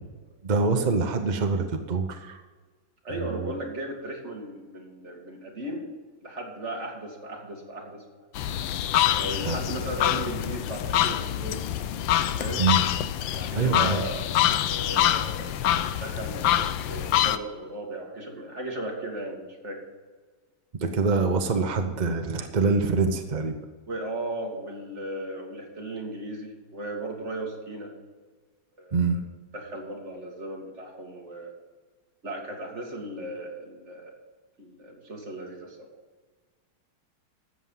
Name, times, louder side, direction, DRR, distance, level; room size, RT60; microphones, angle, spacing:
voice 1, 0.4-2.4 3.1-3.5 9.4-9.6 12.6-12.8 13.5-14.0 20.7-23.5 28.9-29.2, right 4 dB, 60° right, 6 dB, 0.4 m, -25 dB
voice 2, 3.0-5.9 6.2-8.0 9.1-11.6 12.4-12.6 13.3-14.3 14.7-15.7 16.0-19.8 23.9-27.9 28.8-29.0 29.5-31.5 32.2-34.1 34.6-35.9, right 1 dB, 35° right, 0 dB, 2.5 m, -36 dB
sound 1, 8.4-17.4, left 12 dB, 75° left, 1.3 m, -25 dB
13.5 x 8.2 x 5.6 m, 1.4 s
omnidirectional pair, 2.3 m